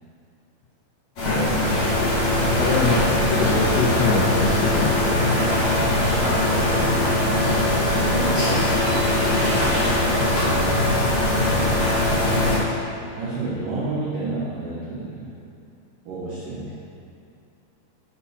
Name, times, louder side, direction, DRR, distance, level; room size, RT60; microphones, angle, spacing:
sound 1, 1.2-12.6, left 1 dB, 50° left, 1.9 m, -21 dB
voice 1, 1.3-2.0 2.5-4.9, left 4 dB, 80° left, -6 dB, 2.6 m, -24 dB
voice 2, 8.0-8.6 9.2-10.6 13.1-15.3 16.1-16.8, right 3 dB, 80° right, -10 dB, 1.9 m, -31 dB
7.2 x 4.5 x 5.5 m, 2.6 s
omnidirectional pair, 5.8 m